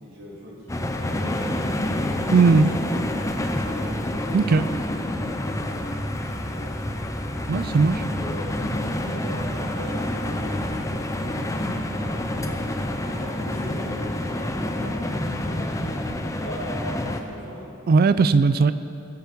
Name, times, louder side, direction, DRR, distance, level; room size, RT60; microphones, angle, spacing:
voice 1, 0.0-2.7 3.2-4.8 6.3-6.8 7.9-16.0 16.3-17.8, equal, 85° right, -7 dB, 3.2 m, -39 dB
sound 1, 0.7-17.2, left 1 dB, 15° left, 0.7 m, -28 dB
voice 2, 2.3-2.7 4.3-4.6 7.5-8.0 17.9-18.7, right 4 dB, 45° right, 14 dB, 0.4 m, -17 dB
17.5 x 9.5 x 5.2 m, 2.6 s
head